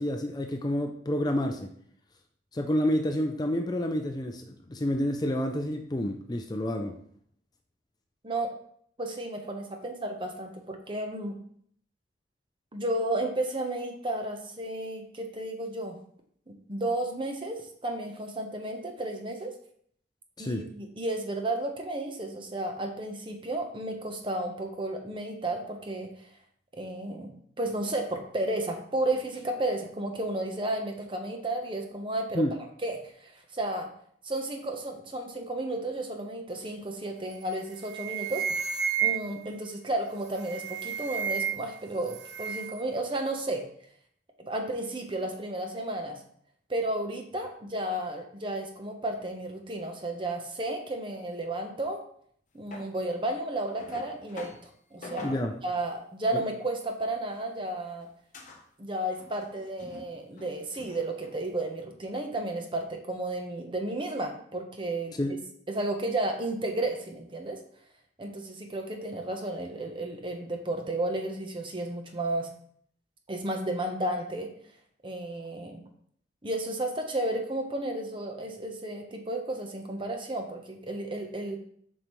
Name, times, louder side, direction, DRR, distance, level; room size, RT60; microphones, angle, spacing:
voice 1, 0.0-1.7 2.5-7.0 20.4-20.7 32.3-32.5 55.2-55.5 56.3-56.4 65.1-65.3, left 1 dB, 20° left, 5 dB, 0.5 m, -29 dB
voice 2, 9.0-11.4 12.7-16.0 16.7-19.5 20.4-26.1 26.8-32.4 32.8-33.9 34.2-38.4 39.0-43.6 44.4-46.2 46.7-52.0 52.5-54.6 54.9-55.3 55.6-58.1 58.8-65.4 65.7-67.6 68.2-72.5 73.3-74.5 75.0-75.8 76.4-81.6, right 1 dB, 30° right, 3 dB, 0.9 m, -33 dB
sound 1, 37.3-37.5 37.8-39.5 40.3-41.8 42.0-42.8, right 7 dB, 65° right, 0.5 m, -31 dB
sound 2, 52.7-52.9 53.8-54.6 55.0-55.4 56.2-56.5 57.1-57.7 58.0-58.1 58.3-58.6 59.2-60.1 60.4-61.4, left 2 dB, 45° left, 1.0 m, -45 dB
7.6 x 5.2 x 3.1 m, 0.63 s
head